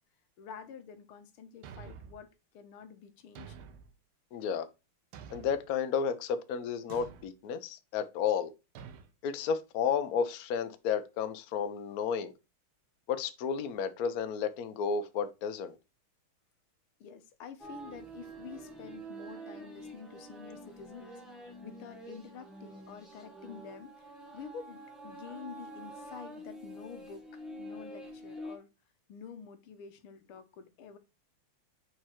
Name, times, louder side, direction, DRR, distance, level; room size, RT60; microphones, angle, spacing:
voice 1, 0.4-3.6 17.0-27.2 27.6-28.7 29.1-31.0, left 6 dB, 80° left, 1.8 m, -48 dB
Thump thud, 1.6-2.3 3.4-3.9 5.1-5.7 6.9-7.3 8.8-9.1, right 7 dB, 80° right, 1.7 m, -48 dB
voice 2, 4.3-4.7 5.3-8.5 9.2-12.3 13.1-15.7, left 7 dB, 60° left, 1.0 m, -32 dB
sound 1, 17.6-28.6, right 1 dB, ahead, 1.2 m, -47 dB
4.8 x 4.7 x 4.4 m
omnidirectional pair, 2.4 m